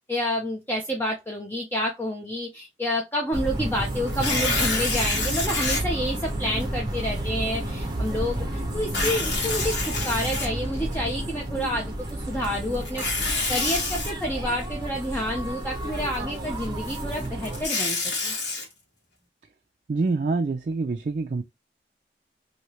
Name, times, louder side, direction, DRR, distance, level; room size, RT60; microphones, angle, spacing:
voice 1, 0.1-18.0 18.2-18.3, equal, 10° left, 0.5 m, -29 dB
sound 1, 3.3-17.7, right 1 dB, 25° right, 0.8 m, -31 dB
Tearing, 4.1-5.8 6.5-6.6 8.8-10.9 12.8-14.1 17.2-18.6, left 3 dB, 80° left, 1.4 m, -27 dB
voice 2, 19.9-21.4, right 3 dB, 45° right, 0.3 m, -26 dB
3.1 x 2.7 x 2.9 m
head